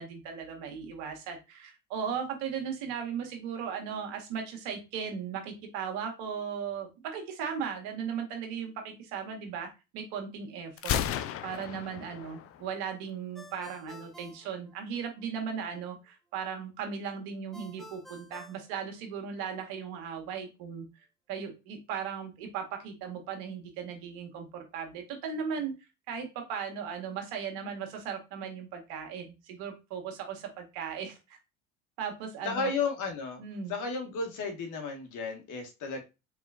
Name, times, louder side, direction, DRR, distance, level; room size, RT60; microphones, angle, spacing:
voice 1, 0.0-20.9 21.3-25.7 26.1-31.4 32.0-32.7 33.4-33.8, right 7 dB, 70° right, 4 dB, 1.4 m, -37 dB
Gunshot gunfire, 10.8-12.7, left 10 dB, 40° left, 0.4 m, -33 dB
Ringtone, 13.3-15.3 17.5-19.5, right 1 dB, ahead, 0.7 m, -51 dB
voice 2, 32.4-33.4 33.7-36.0, left 4 dB, 55° left, 4 dB, 1.5 m, -33 dB
4.1 x 3.6 x 2.4 m, 0.26 s
hypercardioid pair, 85°, 36 cm